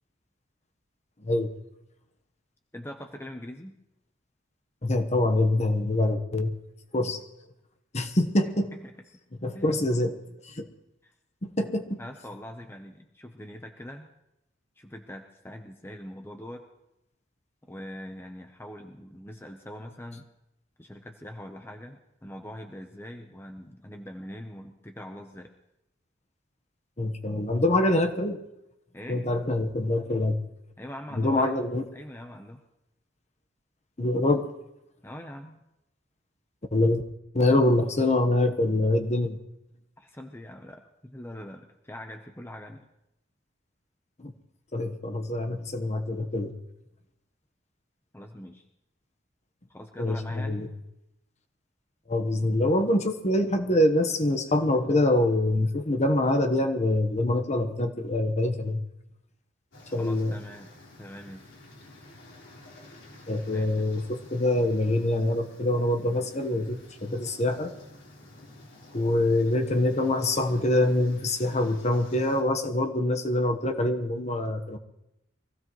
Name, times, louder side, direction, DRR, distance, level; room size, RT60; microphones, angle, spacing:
voice 1, 2.7-3.8 8.7-8.9 9.5-9.7 11.0-11.1 12.0-14.1 14.8-16.6 17.6-20.3 20.8-25.5 28.9-29.2 30.8-31.5 31.9-32.6 35.0-35.6 40.0-42.9 48.1-48.6 49.7-50.8 60.0-60.7 61.0-61.4 63.5-63.9, left 1 dB, 10° left, 4 dB, 0.8 m, -42 dB
voice 2, 4.8-6.5 6.9-7.2 7.9-8.7 9.4-10.2 10.4-10.7 11.4-12.0 27.0-28.4 29.1-30.4 31.1-31.8 34.0-34.5 36.7-37.0 37.3-39.4 44.2-44.3 44.7-46.5 50.0-50.7 52.1-58.8 59.9-60.3 63.3-67.7 68.9-74.8, left 1 dB, 35° left, 6 dB, 1.1 m, -25 dB
sound 1, 59.7-72.4, left 1 dB, 80° left, 3.9 m, -50 dB
24.0 x 15.5 x 3.1 m, 0.88 s
head